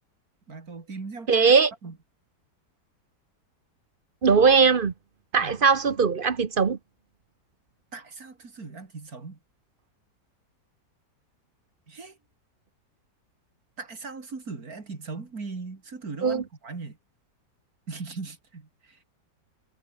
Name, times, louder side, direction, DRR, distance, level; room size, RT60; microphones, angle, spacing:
voice 1, 0.5-1.6 1.8-2.0 5.4-5.5 7.9-9.4 11.9-12.2 13.8-17.0 17.9-19.0, right 4 dB, 55° right, 3.5 m, -39 dB
voice 2, 1.3-1.7 4.2-4.9 5.3-6.8 16.2-16.4, right 5 dB, 40° right, 0.9 m, -20 dB
omnidirectional pair, 1.9 m